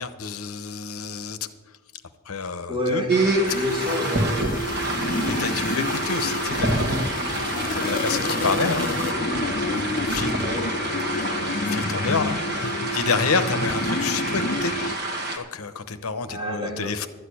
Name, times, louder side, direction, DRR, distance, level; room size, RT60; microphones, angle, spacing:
voice 1, 0.0-1.5 2.3-3.0 5.3-7.5 7.7-10.7 11.1-14.7 15.3-17.1, left 5 dB, 75° left, 11 dB, 0.9 m, -29 dB
voice 2, 2.7-3.1 3.5-4.5 10.4-10.6 16.3-16.9, left 1 dB, 20° right, -1 dB, 2.5 m, -28 dB
sound 1, 3.1-15.4, right 2 dB, 50° right, 1.8 m, -27 dB
sound 2, 3.2-14.9, left 2 dB, 40° left, 0.5 m, -29 dB
12.5 x 6.7 x 9.8 m, 1.2 s
head